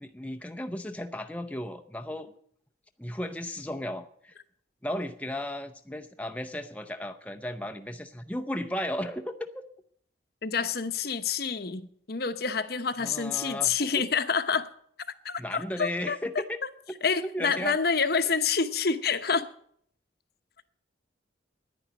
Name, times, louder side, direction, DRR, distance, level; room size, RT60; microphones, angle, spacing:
voice 1, 0.0-2.3 3.0-4.3 4.8-9.4 13.0-13.9 15.4-16.6 17.2-17.8, left 1 dB, 5° left, 0.6 m, -35 dB
voice 2, 10.4-11.8 12.1-14.7 15.2-16.2 17.0-19.5, left 5 dB, 55° left, 0.9 m, -27 dB
10.5 x 10.0 x 9.5 m
head